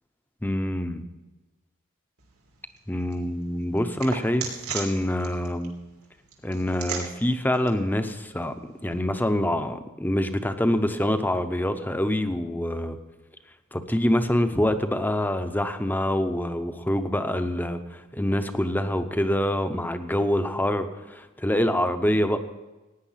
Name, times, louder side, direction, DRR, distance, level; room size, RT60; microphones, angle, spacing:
voice 1, 0.4-1.0 2.9-4.5 4.7-5.7 6.4-13.0 13.7-22.4, left 1 dB, 10° left, 9 dB, 0.7 m, -25 dB
sound 1, 2.2-9.0, right 6 dB, 85° right, 3.0 m, -40 dB
16.5 x 9.8 x 5.7 m, 1.1 s
head